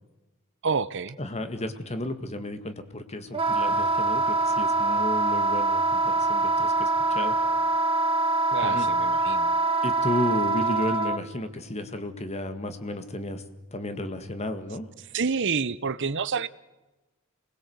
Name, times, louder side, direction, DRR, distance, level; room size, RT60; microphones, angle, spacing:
voice 1, 0.6-1.2 8.5-9.6 15.1-16.5, right 5 dB, 60° right, 0.8 m, -28 dB
voice 2, 1.2-7.3 8.6-8.9 9.8-13.4 13.7-14.9, left 1 dB, 30° left, 1.9 m, -33 dB
Wind instrument woodwind instrument, 3.3-11.2, right 2 dB, 25° right, 1.4 m, -24 dB
26.5 x 20.5 x 8.0 m
head